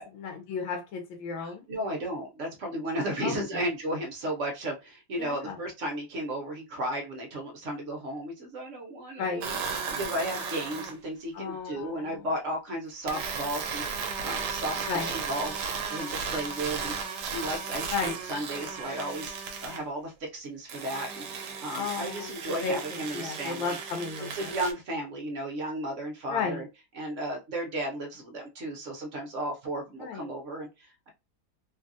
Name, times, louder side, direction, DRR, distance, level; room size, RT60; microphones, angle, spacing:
voice 1, 0.0-1.6 3.2-3.6 5.2-5.6 9.2-9.5 11.3-12.3 14.8-15.1 17.9-18.2 21.7-24.6 26.3-26.6 30.0-30.3, left 5 dB, 80° left, 4 dB, 1.4 m, -34 dB
voice 2, 1.3-9.6 9.9-21.2 21.6-23.8 24.4-26.6 27.0-31.1, right 1 dB, 55° right, 1 dB, 0.9 m, -34 dB
sound 1, 9.4-11.0 13.1-19.8 20.7-24.7, right 5 dB, 70° right, 1.1 m, -35 dB
3.2 x 2.3 x 2.6 m, 0.25 s
omnidirectional pair, 2.1 m